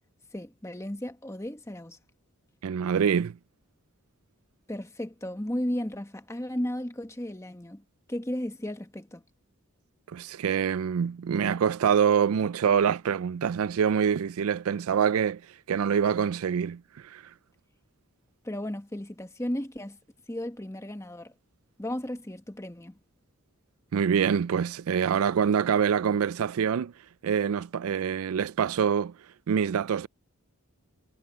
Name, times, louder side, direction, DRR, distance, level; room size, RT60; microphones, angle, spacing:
voice 1, 0.3-2.0 4.7-7.8 8.1-9.2 18.4-20.0 20.3-21.3 21.8-23.0, left 1 dB, 15° left, 1.2 m, -34 dB
voice 2, 2.6-3.4 10.1-15.4 15.7-17.2 23.9-26.9 27.2-29.1 29.5-30.1, right 7 dB, 75° right, 0.4 m, -25 dB
head